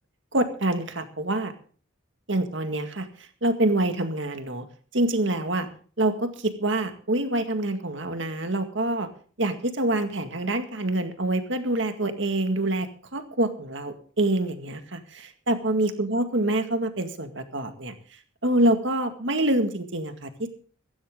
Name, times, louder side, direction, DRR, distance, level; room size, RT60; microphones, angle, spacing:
voice 1, 0.3-1.5 2.3-3.1 3.4-4.6 4.9-5.7 6.0-9.1 9.4-17.9 18.4-20.5, right 1 dB, 65° right, 7 dB, 2.0 m, -26 dB
16.0 x 15.0 x 3.8 m, 0.42 s
head